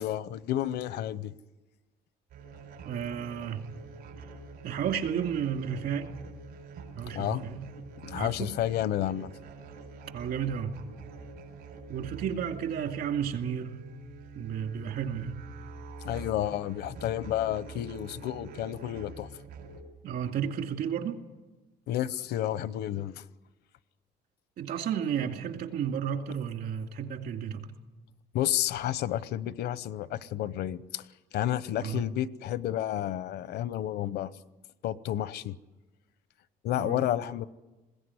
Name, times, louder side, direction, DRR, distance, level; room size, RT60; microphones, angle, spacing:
voice 1, 0.0-1.3 7.1-7.4 8.0-9.3 16.0-19.3 21.9-23.2 28.3-31.0 31.3-34.3 34.8-35.6 36.6-37.5, left 12 dB, 75° left, 18 dB, 0.8 m, -31 dB
sound 1, 2.3-19.8, right 4 dB, 85° right, 4.8 m, -46 dB
voice 2, 2.8-3.6 4.6-6.1 7.0-7.7 8.1-8.5 10.1-10.7 11.9-13.8 14.3-15.5 20.0-21.2 24.6-27.7 31.8-32.0 36.8-37.1, right 8 dB, 65° right, 5 dB, 2.4 m, -32 dB
21.0 x 17.0 x 9.7 m, 1.1 s
cardioid pair, 110°, 17 cm